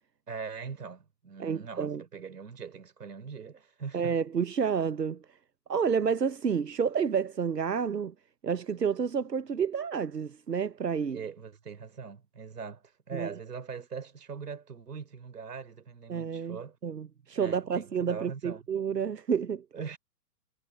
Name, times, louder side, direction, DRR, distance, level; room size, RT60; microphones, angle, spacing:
voice 1, 0.3-4.2 11.1-16.8 17.3-18.6 19.7-20.0, right 6 dB, 75° right, 3.8 m, -41 dB
voice 2, 1.4-2.0 3.9-5.2 5.7-8.1 8.4-11.2 13.1-13.3 16.1-19.6, right 6 dB, 90° right, 0.9 m, -30 dB
figure-of-eight pair, 110°, 47 cm